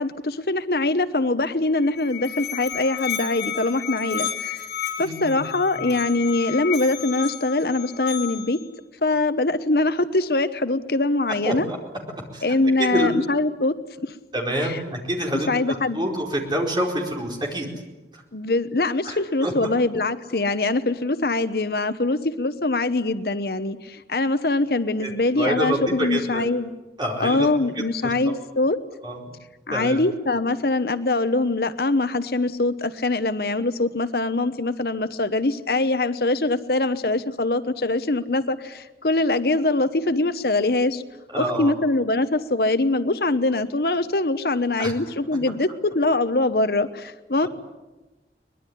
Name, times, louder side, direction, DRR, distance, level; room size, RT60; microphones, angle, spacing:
voice 1, 0.0-4.7 5.0-8.6 9.0-11.7 12.4-14.1 14.6-14.8 15.5-16.0 18.3-26.7 27.2-28.8 29.7-41.0 41.3-47.5, left 2 dB, 60° left, 12 dB, 1.0 m, -23 dB
Musical instrument, 1.7-8.6, left 9 dB, 75° left, 5.1 m, -32 dB
voice 2, 5.0-5.5 5.8-5.9 11.5-11.8 12.3-12.4 12.8-13.1 14.3-17.7 18.1-18.2 19.0-19.5 25.0-26.5 27.0-27.5 28.0-28.1 29.0-29.2 29.7-30.0 41.3-41.7 44.8-44.9, right 1 dB, 25° right, 1 dB, 4.5 m, -27 dB
23.5 x 21.0 x 10.0 m, 1.1 s
head